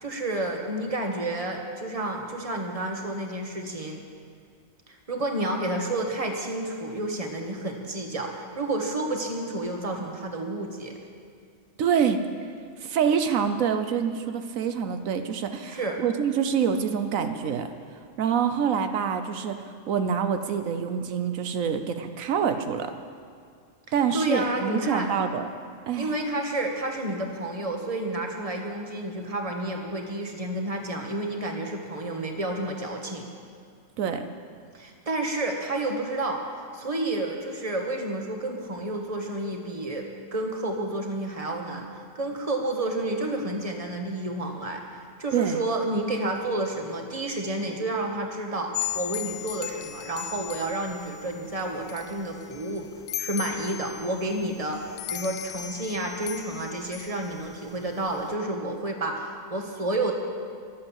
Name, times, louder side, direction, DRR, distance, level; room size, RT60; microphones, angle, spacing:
voice 1, 0.0-4.0 4.9-10.9 15.6-16.0 24.1-25.1 26.0-33.2 34.7-44.8 45.2-52.9 53.2-60.1, right 2 dB, 25° right, 2 dB, 1.6 m, -30 dB
voice 2, 11.8-12.2 12.8-17.7 18.2-19.6 19.9-22.9 23.9-25.5 25.9-26.2 34.0-34.3 45.3-45.6, right 7 dB, 85° right, 8 dB, 1.2 m, -26 dB
sound 1, 48.7-58.3, left 12 dB, 70° left, 0.9 m, -37 dB
22.5 x 7.9 x 7.3 m, 2.1 s
omnidirectional pair, 1.4 m